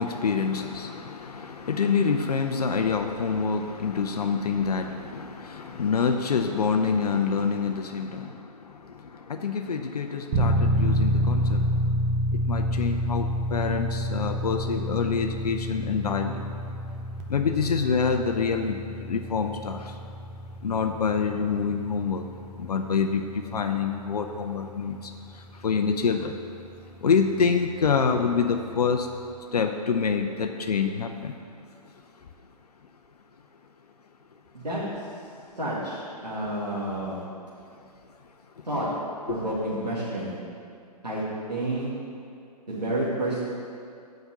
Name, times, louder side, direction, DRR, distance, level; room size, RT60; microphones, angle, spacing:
voice 1, 0.0-11.9 12.5-16.5 17.3-20.0 20.6-22.3 22.6-26.4 27.0-29.1 29.5-31.3 31.9-32.3 38.6-38.7 39.3-39.4, left 5 dB, 70° left, 5 dB, 0.6 m, -27 dB
sound 1, 10.3-27.1, equal, 25° right, 0.8 m, -29 dB
voice 2, 35.6-37.2 38.6-38.9 39.3-40.4 41.0-41.2 41.5-41.9 42.7-43.5, right 1 dB, 90° right, -9 dB, 2.3 m, -29 dB
7.9 x 5.2 x 7.2 m, 2.4 s
figure-of-eight pair, 125°, 21 cm